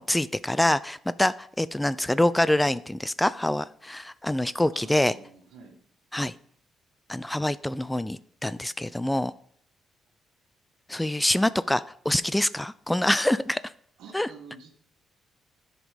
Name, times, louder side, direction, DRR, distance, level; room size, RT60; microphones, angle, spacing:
voice 1, 0.0-5.1 6.1-6.3 7.1-9.3 10.9-13.6 14.1-14.3, left 1 dB, 10° left, 17 dB, 0.3 m, -25 dB
voice 2, 4.7-5.8 14.0-14.7, right 5 dB, 85° right, 4 dB, 1.5 m, -48 dB
9.8 x 5.1 x 5.1 m, 0.64 s
cardioid pair, 90°, 0 cm